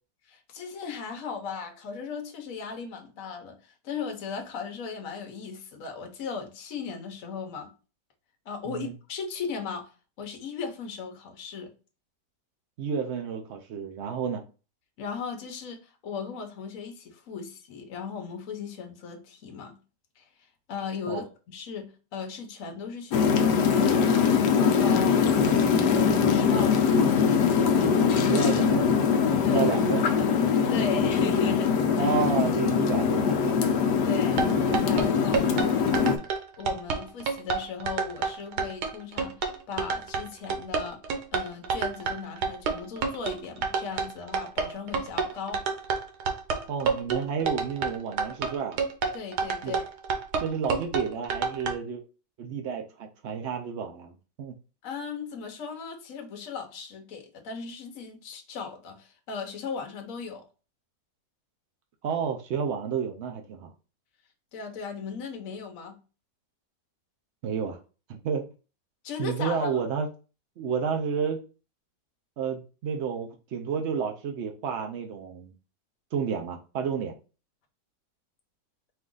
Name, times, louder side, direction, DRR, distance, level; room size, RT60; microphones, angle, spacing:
voice 1, 0.3-7.7 8.4-9.9 10.2-11.7 15.0-19.7 20.2-20.3 20.7-24.0 24.5-25.2 25.5-27.1 27.7-28.2 29.4-29.7 30.7-31.7 32.0-32.1 34.1-34.4 34.8-35.4 35.7-36.1 36.6-41.0 41.3-45.6 49.1-49.9 54.8-60.4 64.5-66.0 69.0-69.7, left 5 dB, 55° left, 1.2 m, -37 dB
voice 2, 12.8-14.4 21.1-21.2 28.1-29.1 29.4-30.0 32.0-33.6 46.7-48.8 49.6-49.7 50.4-52.0 52.4-54.5 62.0-63.7 67.4-67.8 68.1-68.5 69.2-70.1 70.6-71.4 72.4-75.5 76.1-77.1, right 6 dB, 85° right, 0.6 m, -30 dB
sound 1, 23.1-36.2, left 6 dB, 75° left, 1.2 m, -22 dB
sound 2, 34.3-51.7, right 5 dB, 70° right, 1.3 m, -28 dB
4.6 x 2.5 x 3.7 m
omnidirectional pair, 1.9 m